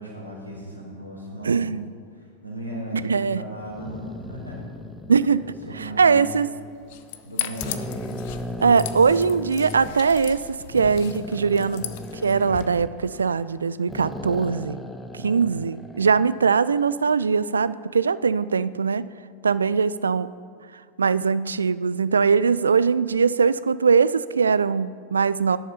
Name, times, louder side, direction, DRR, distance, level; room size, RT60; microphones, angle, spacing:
voice 1, 0.0-1.6 2.1-4.6 5.7-6.3 7.2-7.9, equal, 85° left, -2 dB, 4.2 m, -36 dB
voice 2, 1.4-1.9 3.1-3.4 5.1-5.5 5.8-6.5 8.6-10.4 10.7-14.8 15.1-19.1 19.4-20.3 21.0-25.6, right 5 dB, 75° right, 17 dB, 0.4 m, -21 dB
sound 1, 3.6-6.5 7.1-7.2 7.6-9.9 10.7-13.6 13.9-16.2, left 1 dB, 5° left, 0.9 m, -37 dB
sound 2, 6.7-12.7, left 12 dB, 50° left, 0.8 m, -36 dB
16.5 x 10.5 x 4.4 m, 2.1 s
figure-of-eight pair, 90°, 0 cm